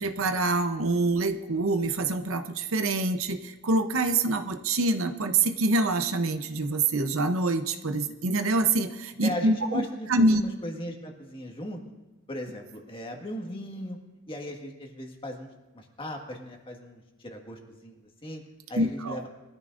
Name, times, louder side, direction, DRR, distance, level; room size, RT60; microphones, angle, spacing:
voice 1, 0.0-9.8 10.1-10.4 18.8-19.2, right 2 dB, 75° right, 8 dB, 0.8 m, -25 dB
voice 2, 9.2-11.8 12.3-14.0 14.3-15.5 15.7-18.4 18.7-19.2, equal, 25° left, 2 dB, 1.7 m, -38 dB
22.0 x 13.5 x 2.6 m, 1.1 s
head